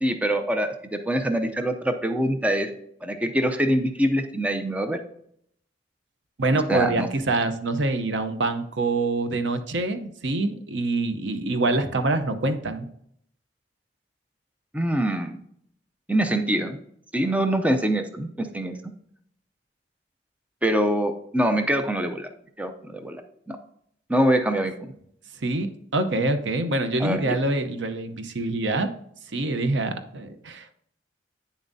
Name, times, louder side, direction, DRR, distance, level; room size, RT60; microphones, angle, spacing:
voice 1, 0.0-2.7 3.0-5.0 6.7-7.1 14.7-15.4 16.1-16.8 17.1-18.9 20.6-22.3 22.6-23.2 23.5-23.6 24.1-24.9 27.0-27.4, right 1 dB, 10° right, 7 dB, 0.5 m, -24 dB
voice 2, 6.4-12.9 25.4-28.9 29.3-30.7, right 2 dB, 80° right, 9 dB, 0.8 m, -25 dB
9.2 x 7.1 x 2.7 m, 0.69 s
head